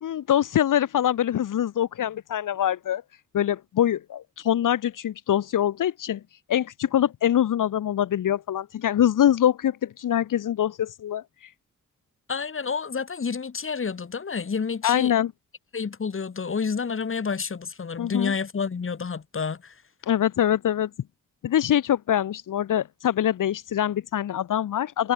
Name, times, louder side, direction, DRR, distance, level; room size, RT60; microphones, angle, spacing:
voice 1, 0.0-3.0 3.3-6.2 6.5-11.5 14.8-15.3 18.0-18.3 20.1-20.9 21.4-25.1, left 10 dB, 85° left, 1.1 m, -24 dB
voice 2, 12.3-15.1 15.7-19.8, left 5 dB, 40° left, 2.6 m, -29 dB
wide cardioid pair, 115°, 31 cm